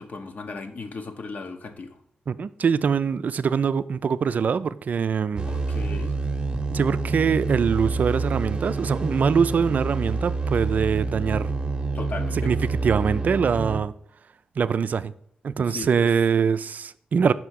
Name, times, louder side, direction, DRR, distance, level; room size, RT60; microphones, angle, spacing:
voice 1, 0.0-2.0 5.5-6.1 11.9-12.5 15.7-15.9, left 4 dB, 55° left, 0.9 m, -36 dB
voice 2, 2.3-5.5 6.7-11.5 12.3-13.9 14.6-15.1 15.4-17.3, right 6 dB, 60° right, 0.3 m, -23 dB
sound 1, 5.4-13.8, right 3 dB, 30° right, 0.8 m, -27 dB
5.6 x 4.3 x 6.2 m
cardioid pair, 55°, 3 cm